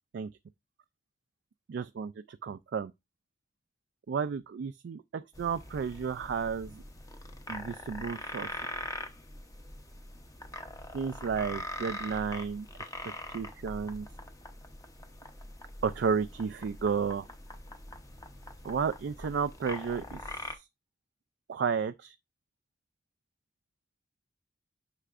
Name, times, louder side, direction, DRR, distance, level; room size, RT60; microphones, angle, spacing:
voice 1, 1.7-2.9 4.1-6.8 7.5-8.5 10.9-12.7 13.3-14.1 15.8-17.3 18.6-20.7 21.5-22.1, right 6 dB, 60° right, 0.3 m, -32 dB
sound 1, 5.3-20.5, left 1 dB, 20° left, 0.8 m, -43 dB
9.8 x 5.8 x 2.5 m
head